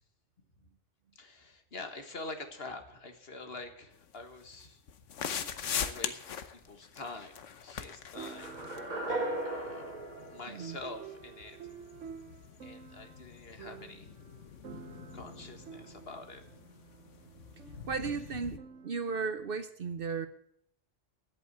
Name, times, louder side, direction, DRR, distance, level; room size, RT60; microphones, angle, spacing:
voice 1, 1.2-4.8 5.3-8.5 9.4-11.6 12.6-14.1 15.1-16.4, left 3 dB, 55° left, 1.7 m, -46 dB
sound 1, 3.9-18.6, left 7 dB, 80° left, 1.3 m, -43 dB
sound 2, 6.6-6.7 8.1-19.4, right 7 dB, 75° right, 1.3 m, -51 dB
sound 3, 8.2-11.3, right 2 dB, 35° right, 1.8 m, -37 dB
voice 2, 10.5-10.8 17.5-20.3, right 5 dB, 55° right, 0.8 m, -36 dB
11.0 x 8.3 x 8.2 m
omnidirectional pair, 1.3 m